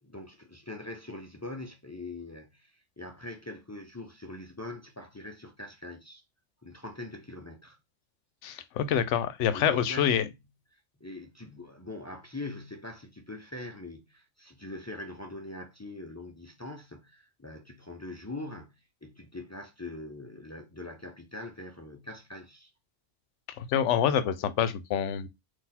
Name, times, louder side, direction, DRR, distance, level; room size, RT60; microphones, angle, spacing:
voice 1, 0.0-6.2 6.6-7.8 9.5-10.3 10.7-22.7, left 2 dB, 25° left, 0.4 m, -43 dB
voice 2, 8.4-10.2 23.6-25.3, left 9 dB, 80° left, 0.9 m, -26 dB
4.0 x 2.6 x 4.1 m
omnidirectional pair, 1.2 m